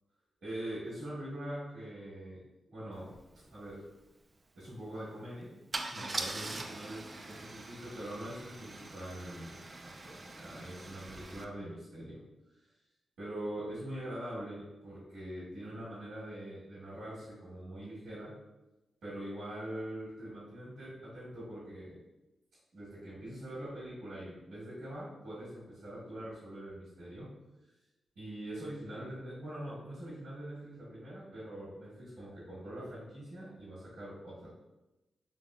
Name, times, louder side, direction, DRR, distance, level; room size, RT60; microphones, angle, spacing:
voice 1, 0.4-3.8 4.5-5.5 5.8-12.2 12.5-12.7 13.2-18.3 19.0-22.0 22.7-27.3 28.1-34.5, right 1 dB, 80° right, -11 dB, 1.4 m, -43 dB
Car / Engine starting / Idling, 3.1-3.2 3.5-3.7 5.7-11.4, right 2 dB, 35° right, 0.3 m, -42 dB
3.5 x 2.7 x 2.4 m, 1.0 s
cardioid pair, 90°, 0 cm